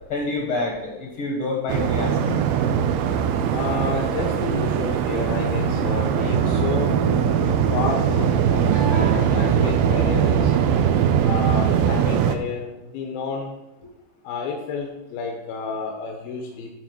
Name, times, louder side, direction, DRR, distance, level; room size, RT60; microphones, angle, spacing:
voice 1, 0.1-2.4, left 3 dB, 60° left, 0 dB, 1.5 m, -27 dB
Waves surf, 1.7-12.4, right 8 dB, 85° right, 2.5 m, -21 dB
voice 2, 3.5-6.9 7.7-10.5 11.2-13.6 14.2-16.7, left 4 dB, 85° left, 0 dB, 2.8 m, -30 dB
sound 1, 5.3-11.9, left 2 dB, 40° right, 1.3 m, -32 dB
11.5 x 4.1 x 6.1 m, 0.95 s
omnidirectional pair, 4.2 m